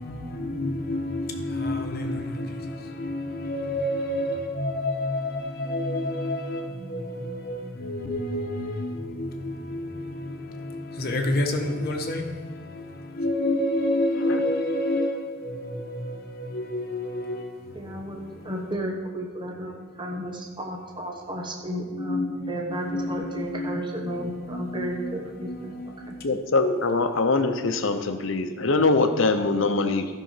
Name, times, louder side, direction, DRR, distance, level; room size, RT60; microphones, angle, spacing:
voice 1, 0.0-12.3 13.2-17.4 21.9-23.8 24.0-25.1 25.5-25.9, left 1 dB, 50° left, 1.2 m, -29 dB
voice 2, 17.8-25.7 26.1-26.2, right 1 dB, 25° right, 1.1 m, -33 dB
voice 3, 26.2-30.1, left 3 dB, 65° left, 0.8 m, -23 dB
12.5 x 5.6 x 5.7 m
head